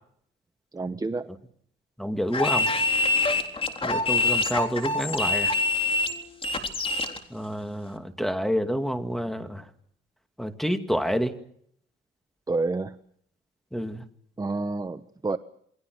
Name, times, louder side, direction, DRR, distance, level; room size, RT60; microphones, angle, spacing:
voice 1, 0.7-1.2 12.5-12.9 14.4-15.4, right 3 dB, 20° right, 11 dB, 1.0 m, -28 dB
voice 2, 2.0-2.7 3.8-5.5 7.3-9.6 10.4-11.3 13.7-14.0, equal, ahead, 7 dB, 2.5 m, -28 dB
sound 1, 2.3-7.2, left 2 dB, 30° left, 3.8 m, -25 dB
29.0 x 21.5 x 6.5 m, 0.68 s
cardioid pair, 90°, 20 cm